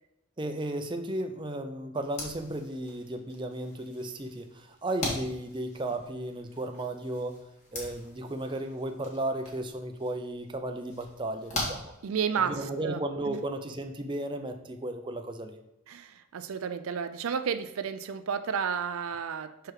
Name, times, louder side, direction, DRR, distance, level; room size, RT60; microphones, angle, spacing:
voice 1, 0.4-7.4 7.7-11.9 12.5-15.6, right 1 dB, 20° right, 5 dB, 0.5 m, -34 dB
sound 1, 2.0-12.6, left 1 dB, 35° left, 2.0 m, -42 dB
voice 2, 12.0-13.0 13.3-13.4 15.9-19.7, right 7 dB, 70° right, 11 dB, 0.4 m, -32 dB
6.0 x 4.7 x 4.7 m, 0.90 s
head